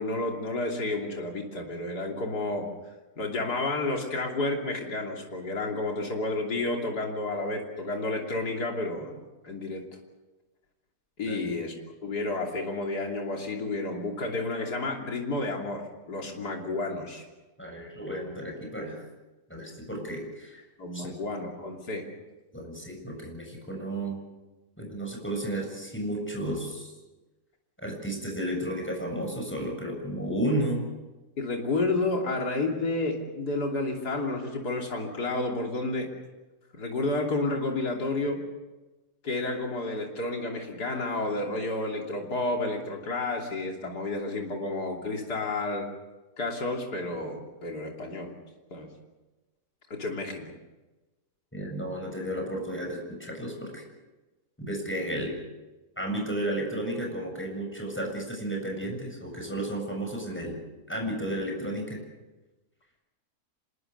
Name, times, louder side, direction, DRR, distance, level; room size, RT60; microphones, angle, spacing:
voice 1, 0.0-2.7 3.2-9.9 11.2-11.7 12.0-17.2 20.8-22.0 31.4-36.1 36.7-38.4 39.2-45.9 46.4-48.3 48.7-48.9 49.9-50.5, left 2 dB, 80° left, 0 dB, 3.6 m, -31 dB
voice 2, 17.6-19.1 19.5-20.6 20.9-21.2 22.5-24.2 24.8-26.9 27.8-30.9 51.5-53.8 54.6-55.3 56.0-60.6 60.9-62.0, right 1 dB, 5° left, 1 dB, 7.3 m, -33 dB
26.5 x 22.0 x 6.8 m, 1.1 s
omnidirectional pair, 1.7 m